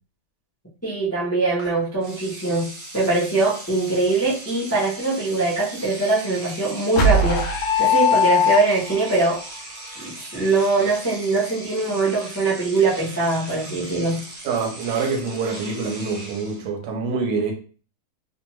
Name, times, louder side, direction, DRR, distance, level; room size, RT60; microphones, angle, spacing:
voice 1, 0.8-2.7 2.9-7.4 7.8-9.4 10.0-14.2, right 3 dB, 15° left, 0.5 m, -22 dB
Engine / Domestic sounds home sounds, 1.6-1.7 2.0-16.7, right 1 dB, 45° right, 0.5 m, -39 dB
sound 1, 7.0-9.1, left 3 dB, 70° left, 0.7 m, -19 dB
voice 2, 14.4-17.5, right 4 dB, 80° right, 1.1 m, -25 dB
2.6 x 2.3 x 3.0 m
omnidirectional pair, 1.8 m